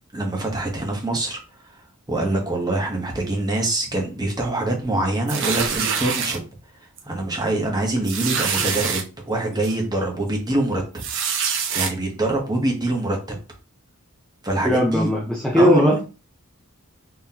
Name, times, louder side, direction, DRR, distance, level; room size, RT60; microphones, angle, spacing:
voice 1, 0.1-1.7 2.1-6.4 7.0-10.8 11.7-13.4 14.4-15.1 15.6-16.0, right 2 dB, 20° right, 1.0 m, -24 dB
sound 1, 5.3-6.4 7.0-7.1 7.4-7.5 8.1-9.0 9.6-9.7 11.0-11.9, right 6 dB, 60° right, 0.7 m, -25 dB
voice 2, 14.6-16.0, equal, 5° left, 0.5 m, -18 dB
3.7 x 3.0 x 2.8 m
head